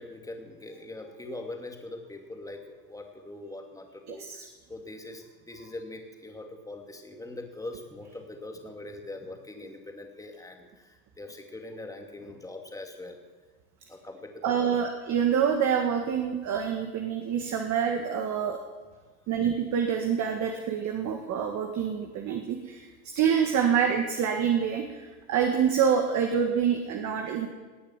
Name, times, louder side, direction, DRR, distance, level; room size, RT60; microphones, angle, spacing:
voice 1, 0.0-13.2 13.9-14.8, left 2 dB, 5° left, 3 dB, 2.4 m, -42 dB
voice 2, 4.1-4.5 14.4-18.6 19.3-22.9 23.2-27.5, right 7 dB, 40° right, 3 dB, 1.9 m, -26 dB
18.5 x 8.6 x 7.4 m, 1.3 s
hypercardioid pair, 105°, 45 cm